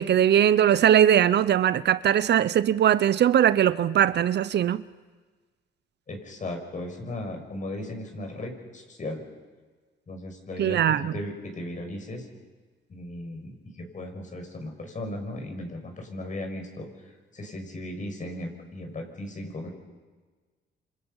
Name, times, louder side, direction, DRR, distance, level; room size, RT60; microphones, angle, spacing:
voice 1, 0.0-4.8 10.6-11.1, right 10 dB, 60° right, 0.7 m, -20 dB
voice 2, 6.1-9.2 10.1-12.2 12.9-19.7, left 1 dB, 40° left, 6.4 m, -36 dB
27.5 x 27.0 x 5.6 m
cardioid pair, 90°, 20 cm